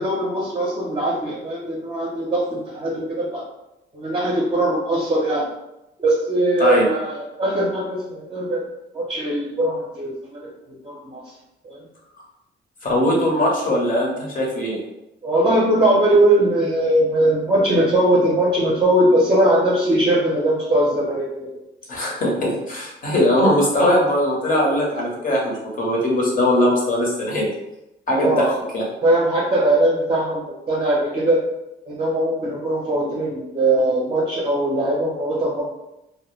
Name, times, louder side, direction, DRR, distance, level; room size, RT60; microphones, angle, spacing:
voice 1, 0.0-3.4 3.9-5.5 6.0-8.6 8.9-10.5 10.8-11.3 11.6-11.8 15.2-21.5 28.2-28.6 29.0-31.4 31.8-35.6, right 1 dB, 30° right, -4 dB, 0.6 m, -20 dB
voice 2, 12.8-14.8 21.9-27.5 28.1-28.5 28.7-28.8, left 1 dB, 45° left, -2 dB, 0.9 m, -20 dB
2.1 x 2.1 x 3.1 m, 0.90 s
cardioid pair, 90°, 20 cm